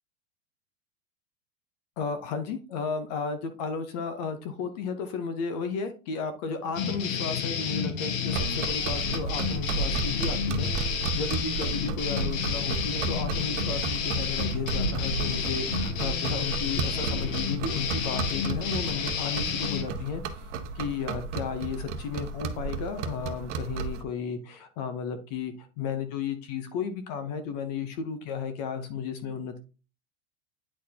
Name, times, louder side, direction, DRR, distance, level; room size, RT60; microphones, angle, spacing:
voice 1, 2.0-29.6, left 5 dB, 30° left, 9 dB, 0.6 m, -34 dB
sound 1, 6.8-19.9, left 6 dB, 65° left, 1.6 m, -31 dB
sound 2, 8.3-24.0, right 4 dB, 55° right, 1.0 m, -33 dB
9.4 x 4.4 x 2.7 m, 0.33 s
supercardioid pair, 170°, 42 cm